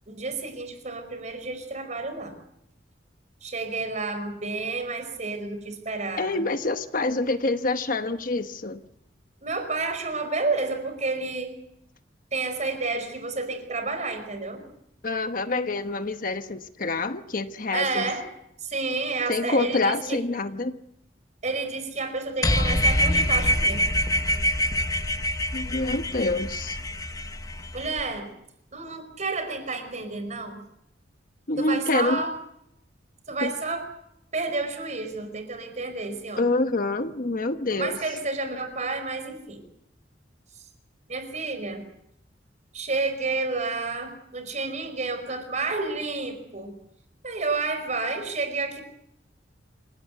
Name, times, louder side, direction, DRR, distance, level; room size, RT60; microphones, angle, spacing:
voice 1, 0.1-2.3 3.4-6.4 9.4-11.5 12.3-14.6 17.7-18.3 18.6-20.2 21.4-23.8 27.7-28.3 28.7-30.6 31.6-32.3 33.3-33.9 34.3-36.5 37.7-39.6 41.1-41.8 42.7-46.7 47.2-48.8, right 3 dB, 40° right, 8 dB, 4.9 m, -30 dB
voice 2, 6.2-8.8 15.0-18.1 19.3-20.8 25.5-26.8 31.5-32.2 33.4-33.5 36.4-38.0, left 2 dB, 50° left, 8 dB, 1.2 m, -26 dB
sound 1, 22.4-28.0, equal, 20° left, 1.0 m, -25 dB
27.5 x 17.5 x 8.1 m, 0.78 s
head